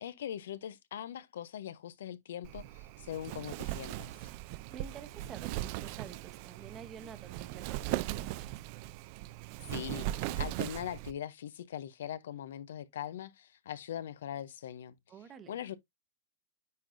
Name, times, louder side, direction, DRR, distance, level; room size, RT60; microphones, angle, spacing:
voice 1, 0.0-4.3 9.7-14.9 15.5-15.8, left 10 dB, 75° left, 0.6 m, -41 dB
Wind, 2.4-11.1, right 15 dB, 45° right, 0.4 m, -39 dB
voice 2, 4.7-8.5 15.1-15.5, right 7 dB, 20° right, 0.9 m, -50 dB
9.5 x 3.8 x 2.6 m
hypercardioid pair, 145°, 0 cm